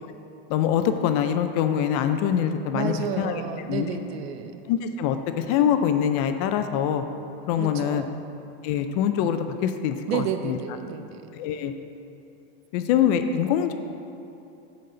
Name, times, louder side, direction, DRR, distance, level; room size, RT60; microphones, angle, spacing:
voice 1, 0.5-3.4 3.7-3.9 4.7-7.0 7.5-8.0 8.6-10.6 11.3-11.7 12.7-13.7, left 9 dB, 40° left, 8 dB, 0.4 m, -24 dB
voice 2, 2.7-4.5 7.6-8.1 10.1-11.2, right 7 dB, 90° right, 7 dB, 0.8 m, -31 dB
8.9 x 4.1 x 6.6 m, 2.8 s
supercardioid pair, 160°, 30 cm